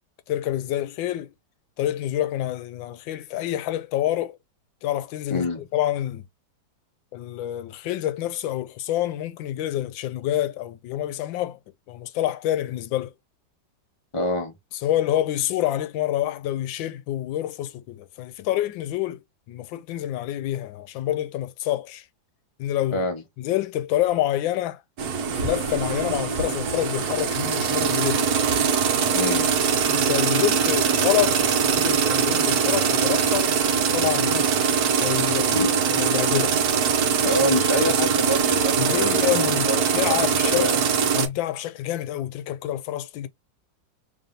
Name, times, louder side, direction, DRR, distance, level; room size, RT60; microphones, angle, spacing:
voice 1, 0.3-1.3 1.8-4.4 4.8-5.5 5.7-6.2 7.1-11.6 11.9-13.1 14.8-19.2 19.5-22.0 22.6-23.1 23.4-24.8 25.4-28.3 29.9-33.5 33.9-34.5 35.0-35.6 35.9-36.5 38.8-39.7 39.9-40.7 41.1-43.3, left 13 dB, 85° left, 1.3 m, -27 dB
voice 2, 5.3-5.6 14.1-14.5 22.9-23.2 29.1-29.5 35.5-36.1 37.2-40.8, left 2 dB, 20° left, 0.9 m, -27 dB
sound 1, 25.0-41.3, right 6 dB, 65° right, 1.2 m, -22 dB
3.3 x 2.8 x 3.8 m
omnidirectional pair, 2.0 m